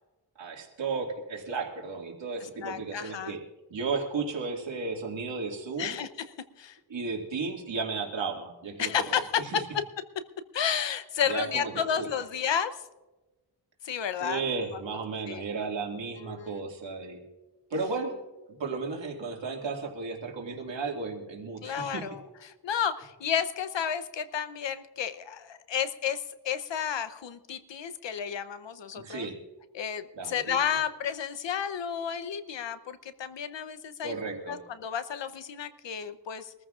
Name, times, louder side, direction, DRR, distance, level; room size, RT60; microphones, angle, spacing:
voice 1, 0.4-3.4 3.7-6.0 6.9-9.6 11.3-11.7 12.0-12.1 14.2-17.2 17.7-18.2 18.5-22.1 29.0-29.4 30.2-30.6 34.0-34.6, right 4 dB, 90° right, 1 dB, 2.2 m, -34 dB
voice 2, 2.6-3.3 5.8-6.1 6.6-6.8 8.8-9.8 10.5-12.8 13.8-14.4 15.3-15.4 16.2-16.5 21.6-22.2 22.6-29.3 29.7-36.5, left 8 dB, 90° left, 12 dB, 0.8 m, -31 dB
24.0 x 14.5 x 2.5 m, 1.1 s
wide cardioid pair, 75°, 43 cm